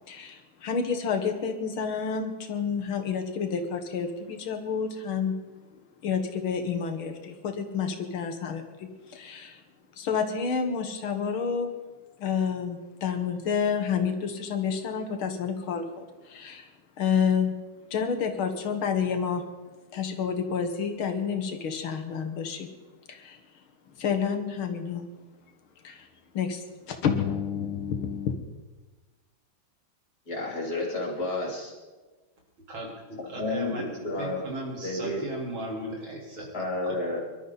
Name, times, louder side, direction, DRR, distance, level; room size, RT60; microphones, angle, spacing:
voice 1, 0.1-5.4 6.0-9.6 10.0-11.7 12.2-15.9 16.2-16.7 17.0-17.6 17.9-19.4 19.9-22.7 23.1-23.4 24.0-25.1 25.8-26.1 26.3-26.6 26.9-28.3, left 6 dB, 85° left, 5 dB, 2.3 m, -29 dB
voice 2, 30.3-31.7 33.4-34.4 34.8-35.2 36.5-37.2, left 2 dB, 50° left, -2 dB, 3.9 m, -31 dB
voice 3, 33.3-33.8 34.2-36.5 36.8-36.9, right 1 dB, 75° right, -3 dB, 4.6 m, -36 dB
24.0 x 12.5 x 4.1 m, 1.2 s
omnidirectional pair, 2.2 m